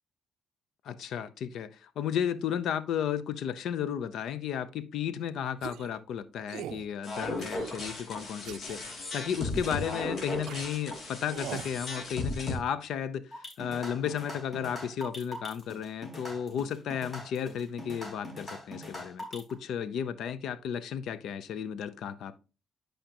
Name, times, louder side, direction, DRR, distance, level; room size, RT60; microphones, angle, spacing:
voice 1, 0.8-22.4, left 8 dB, 75° left, 0.6 m, -34 dB
sound 1, 5.6-6.0 6.5-6.9 7.4-7.9 8.5-8.8 9.5-9.9 10.5-10.6 11.3-11.8, right 11 dB, 85° right, 0.4 m, -42 dB
sound 2, 7.0-12.5, left 2 dB, 55° left, 2.6 m, -36 dB
sound 3, 13.3-19.5, left 1 dB, 30° left, 4.0 m, -42 dB
11.5 x 5.1 x 2.9 m
cardioid pair, 90°, 0 cm